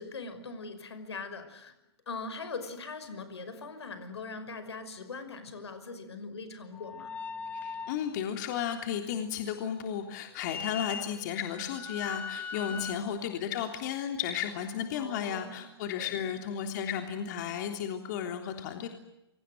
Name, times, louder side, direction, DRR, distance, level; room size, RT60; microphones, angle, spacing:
voice 1, 0.0-1.7 2.1-7.1 12.5-12.8 14.9-15.6 15.9-16.3, left 4 dB, 80° left, 5.7 m, -41 dB
sound 1, 6.7-8.1 10.4-12.9, left 6 dB, 10° left, 1.3 m, -39 dB
voice 2, 7.6-18.9, left 8 dB, 45° left, 3.4 m, -34 dB
28.5 x 24.0 x 7.9 m
hypercardioid pair, 140°, 14 cm